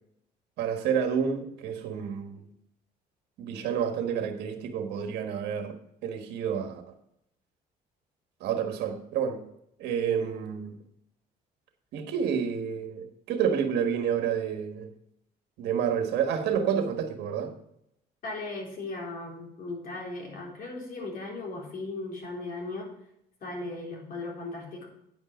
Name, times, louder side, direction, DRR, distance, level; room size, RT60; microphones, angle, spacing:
voice 1, 0.6-2.4 3.4-5.8 6.0-6.8 8.4-9.4 9.8-10.8 11.9-14.9 15.6-17.5, right 7 dB, 80° right, 1.4 m, -29 dB
voice 2, 18.2-22.9 23.4-24.9, left 2 dB, 55° left, 3.9 m, -37 dB
9.7 x 5.4 x 6.3 m
cardioid pair, 110°, 17 cm